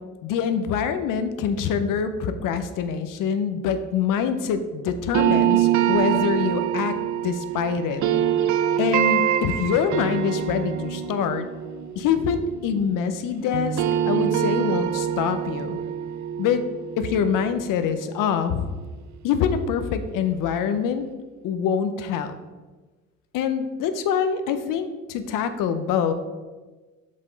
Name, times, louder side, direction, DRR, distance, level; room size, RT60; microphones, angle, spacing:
voice 1, 0.2-7.0 7.2-8.0 8.8-11.5 12.0-15.8 16.4-16.6 17.0-18.7 19.2-21.0 21.4-22.3 23.3-26.1, left 7 dB, 85° left, 9 dB, 0.6 m, -25 dB
sound 1, 5.1-13.2 13.5-18.5, right 10 dB, 65° right, 0.5 m, -25 dB
5.6 x 5.2 x 3.9 m, 1.3 s
cardioid pair, 95°, 32 cm